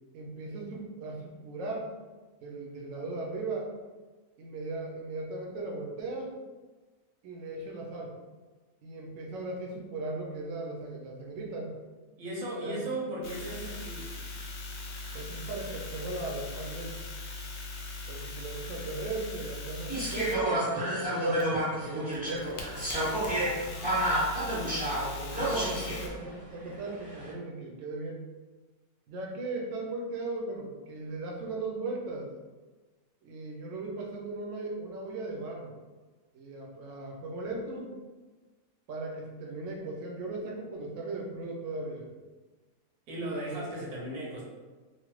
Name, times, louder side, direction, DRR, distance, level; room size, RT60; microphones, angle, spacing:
voice 1, 0.1-1.9 2.4-3.7 4.4-6.3 7.2-8.1 8.8-11.7 12.6-12.9 15.1-16.9 18.1-22.4 25.0-28.2 29.1-32.3 33.2-35.7 36.3-37.9 38.9-42.1 43.3-43.7, right 2 dB, 70° right, -1 dB, 0.9 m, -37 dB
voice 2, 12.2-14.1 43.1-44.4, right 1 dB, 85° right, -4 dB, 1.4 m, -36 dB
sound 1, 13.2-20.3 21.4-26.1, left 3 dB, 65° left, 0.6 m, -40 dB
sound 2, 19.9-26.1 27.0-27.3, right 1 dB, 10° right, 0.6 m, -30 dB
3.1 x 2.1 x 3.0 m, 1.3 s
omnidirectional pair, 1.6 m